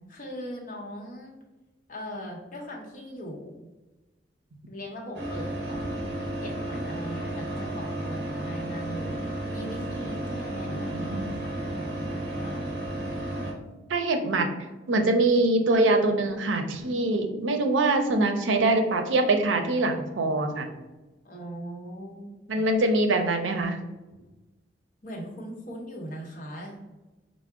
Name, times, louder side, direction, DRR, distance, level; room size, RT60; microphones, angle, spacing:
voice 1, 0.1-1.3 1.9-3.7 4.7-5.8 6.4-9.2 9.5-12.7 21.2-22.6 25.0-26.8, equal, 45° left, -2 dB, 0.9 m, -40 dB
sound 1, 5.1-13.5, right 1 dB, 55° right, 0.8 m, -33 dB
voice 2, 10.7-11.2 13.9-14.5 14.9-20.7 22.5-23.8, right 2 dB, 90° right, 5 dB, 0.5 m, -24 dB
4.6 x 2.0 x 3.6 m, 1.1 s
head